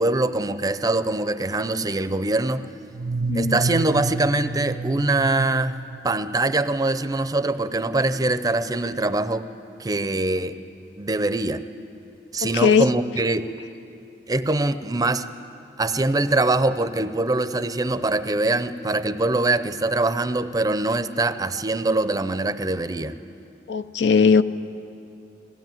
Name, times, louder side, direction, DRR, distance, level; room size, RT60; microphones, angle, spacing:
voice 1, 0.0-2.6 3.3-5.8 6.0-9.5 9.8-10.6 11.0-11.6 12.3-13.5 14.3-15.3 15.8-23.2, right 2 dB, 20° right, 0.6 m, -23 dB
sound 1, 2.9-6.6, right 3 dB, 65° right, 0.6 m, -30 dB
voice 2, 3.3-3.6 12.5-12.9 23.7-24.4, left 5 dB, 75° left, 0.5 m, -18 dB
20.0 x 16.0 x 9.1 m
head